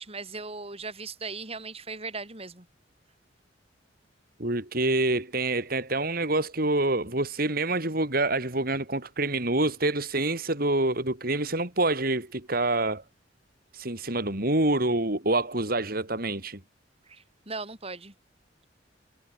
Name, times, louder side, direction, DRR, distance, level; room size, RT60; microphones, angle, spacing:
voice 1, 0.0-2.7 17.1-18.1, right 4 dB, 30° right, 6.2 m, -38 dB
voice 2, 4.4-13.0 13.7-16.6, right 2 dB, 50° right, 4.0 m, -26 dB
head